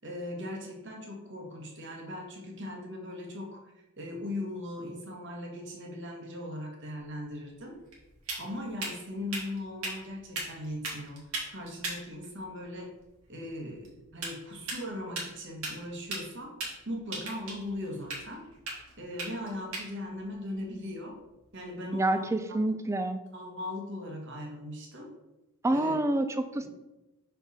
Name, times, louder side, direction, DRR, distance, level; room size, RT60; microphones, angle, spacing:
voice 1, 0.0-3.6 4.0-7.7 8.4-11.2 11.5-12.9 13.3-16.5 16.8-18.4 19.0-21.2 21.5-22.3 23.3-25.1 25.7-26.0 26.6-26.7, left 1 dB, 55° right, 0 dB, 1.3 m, -39 dB
sound 1, 7.0-21.7, right 2 dB, 80° right, 2.1 m, -41 dB
voice 2, 21.9-23.2 25.6-26.7, right 1 dB, 15° right, 10 dB, 0.3 m, -27 dB
5.8 x 4.5 x 4.1 m, 0.99 s
head